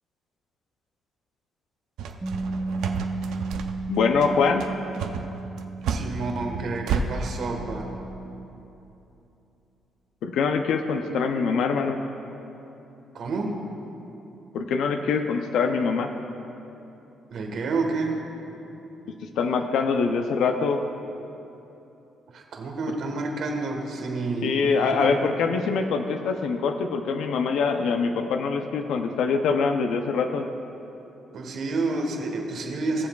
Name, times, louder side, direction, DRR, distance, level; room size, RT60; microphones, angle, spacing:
sound 1, 2.0-7.0, right 6 dB, 85° right, 0.5 m, -30 dB
Bass guitar, 2.2-8.5, right 3 dB, 15° right, 0.6 m, -34 dB
voice 1, 3.9-4.7 10.2-12.0 14.5-16.1 19.4-20.8 22.9-23.0 24.4-30.5, left 5 dB, 80° left, 5 dB, 0.5 m, -24 dB
voice 2, 5.9-7.9 13.1-13.6 17.3-18.2 22.3-25.1 31.3-33.1, right 3 dB, 65° right, 2 dB, 1.3 m, -29 dB
18.5 x 7.1 x 2.3 m, 3.0 s
cardioid pair, 90°, 0 cm